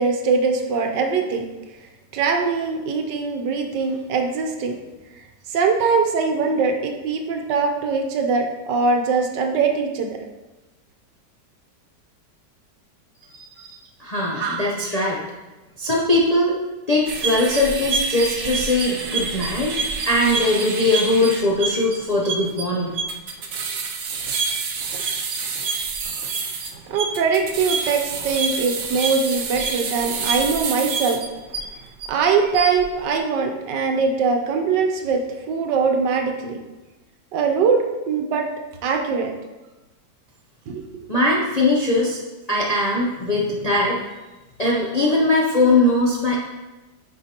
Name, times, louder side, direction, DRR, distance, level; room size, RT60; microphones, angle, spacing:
voice 1, 0.0-1.5 2.1-4.8 5.5-10.2 13.6-13.8 14.4-14.6 26.9-31.2 32.1-35.2 35.5-36.6 37.3-38.5 38.8-39.3 40.7-41.1, right 5 dB, 80° right, 4 dB, 1.4 m, -22 dB
voice 2, 13.4-13.7 14.0-15.2 15.8-16.6 16.9-22.9 41.1-42.2 42.5-44.0 44.6-46.4, left 2 dB, 45° left, -4 dB, 0.5 m, -20 dB
sound 1, 17.1-32.1 32.4-32.8, right 4 dB, 65° right, 1.0 m, -27 dB
8.9 x 4.8 x 2.9 m, 1.1 s
omnidirectional pair, 1.9 m